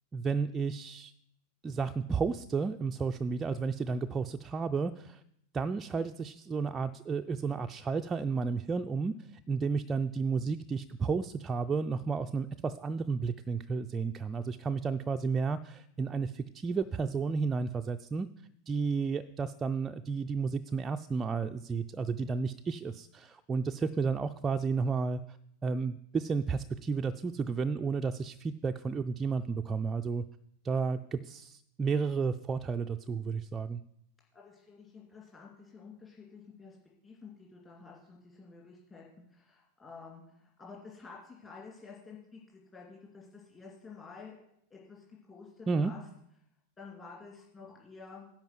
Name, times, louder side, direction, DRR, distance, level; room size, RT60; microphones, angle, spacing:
voice 1, 0.1-1.1 1.6-5.2 5.5-18.3 18.7-25.4 25.6-30.2 30.6-33.8 45.7-45.9, right 5 dB, 20° right, 6 dB, 0.3 m, -32 dB
voice 2, 34.3-36.8 37.0-39.0 39.3-44.4 44.7-46.0 46.8-48.3, left 4 dB, 20° left, -4 dB, 2.4 m, -50 dB
10.5 x 4.5 x 7.4 m, 0.74 s
figure-of-eight pair, 90°, 0 cm